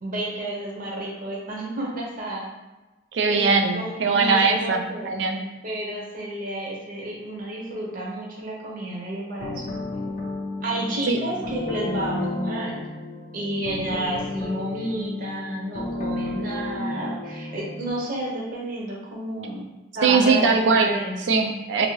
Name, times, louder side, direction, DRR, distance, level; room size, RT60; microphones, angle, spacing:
voice 1, 0.0-2.4 3.2-5.2 5.6-9.8 10.6-12.9 13.3-19.7 19.9-21.1, right 1 dB, 50° right, -4 dB, 0.7 m, -31 dB
voice 2, 3.1-5.5 11.1-11.2 20.0-21.0 21.3-21.9, right 4 dB, 80° right, 4 dB, 0.4 m, -21 dB
sound 1, 9.4-17.9, left 2 dB, 40° left, 0.4 m, -32 dB
2.7 x 2.6 x 3.1 m, 1.1 s
head